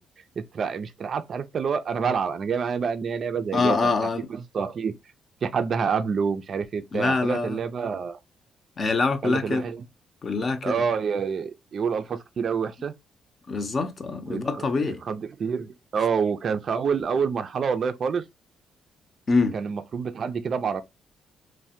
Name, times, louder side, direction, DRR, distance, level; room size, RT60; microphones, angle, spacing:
voice 1, 0.4-3.9 4.3-4.9 5.4-8.2 9.2-9.8 10.6-12.9 14.3-18.3 19.5-20.8, right 6 dB, 50° right, 0.3 m, -27 dB
voice 2, 3.5-4.3 6.9-7.6 8.8-9.7 10.2-10.8 13.5-15.0 19.3-19.5, left 4 dB, 40° left, 0.6 m, -25 dB
3.1 x 2.1 x 2.7 m
cardioid pair, 90°, 0 cm